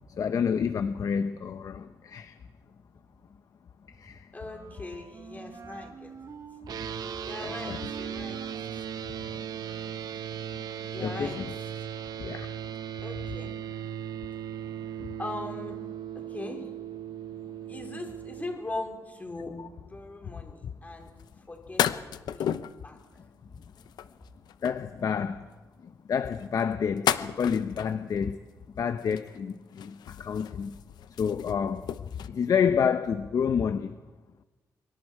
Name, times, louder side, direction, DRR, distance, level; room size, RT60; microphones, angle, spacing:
voice 1, 0.0-2.4 3.9-4.3 7.4-7.8 11.0-11.5 12.2-12.5 15.0-15.1 19.6-19.7 24.6-25.5 25.8-28.4 28.8-30.8 31.2-33.9, left 7 dB, 55° left, 10 dB, 0.8 m, -29 dB
voice 2, 4.3-6.1 7.2-8.4 9.0-9.2 10.9-11.4 13.0-13.6 15.2-15.7 16.3-16.6 17.7-21.1 21.5-22.0 22.3-22.5 22.8-23.0, left 2 dB, 25° left, 2 dB, 4.5 m, -39 dB
Wind instrument woodwind instrument, 4.4-10.0, right 5 dB, 50° right, 1.8 m, -46 dB
sound 1, 6.7-18.6, right 9 dB, 70° right, 1.0 m, -37 dB
sound 2, 21.2-21.3 21.8-22.8 23.6-24.9 26.3-28.2 29.0-29.5 29.8-32.3, left 9 dB, 85° left, 0.8 m, -32 dB
24.5 x 24.0 x 4.8 m, 1.2 s
cardioid pair, 105°, 7 cm